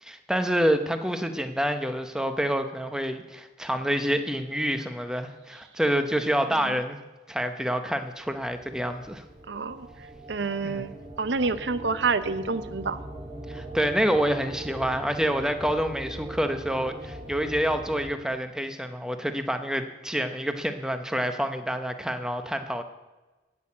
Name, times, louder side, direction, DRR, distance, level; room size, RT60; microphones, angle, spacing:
voice 1, 0.0-7.0 7.3-9.2 10.6-10.9 13.5-22.8, equal, 5° right, 7 dB, 0.8 m, -27 dB
sound 1, 8.2-18.1, right 1 dB, 25° right, 2.1 m, -41 dB
voice 2, 9.5-9.9 10.3-10.9 11.2-13.0, right 4 dB, 85° right, 13 dB, 0.8 m, -28 dB
14.5 x 6.4 x 8.6 m, 1.2 s
head